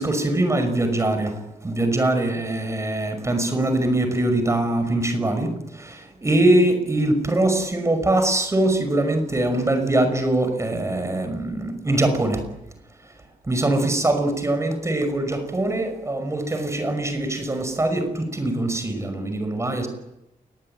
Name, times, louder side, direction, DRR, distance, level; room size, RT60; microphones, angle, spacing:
voice 1, 0.0-12.4 13.5-19.9, right 1 dB, 20° right, 7 dB, 5.7 m, -22 dB
29.0 x 22.5 x 9.2 m, 0.89 s
wide cardioid pair, 175°, 15 cm